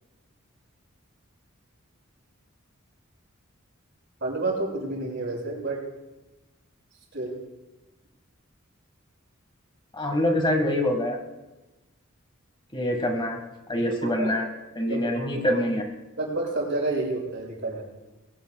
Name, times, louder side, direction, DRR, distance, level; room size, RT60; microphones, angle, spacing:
voice 1, 4.2-5.8 7.1-7.4 14.0-14.3 14.9-15.6 16.2-17.8, right 2 dB, 60° right, -2 dB, 6.1 m, -30 dB
voice 2, 9.9-11.2 12.7-13.4 13.7-14.5 14.8-15.8, left 1 dB, 25° left, 3 dB, 1.8 m, -25 dB
21.0 x 18.0 x 2.4 m, 1.1 s
head